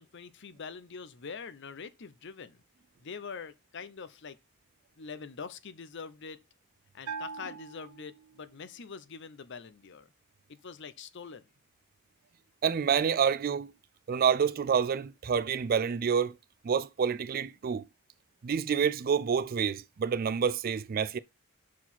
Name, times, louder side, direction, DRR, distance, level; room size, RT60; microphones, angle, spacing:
voice 1, 0.0-2.6 3.0-4.4 5.0-6.4 6.9-10.1 10.5-11.5, left 5 dB, 55° left, 0.7 m, -44 dB
Bell, 7.1-8.7, right 5 dB, 80° right, 0.6 m, -42 dB
voice 2, 12.6-13.7 14.1-16.3 16.6-17.9 18.4-21.2, right 7 dB, 40° right, 0.3 m, -28 dB
6.0 x 4.7 x 5.6 m
head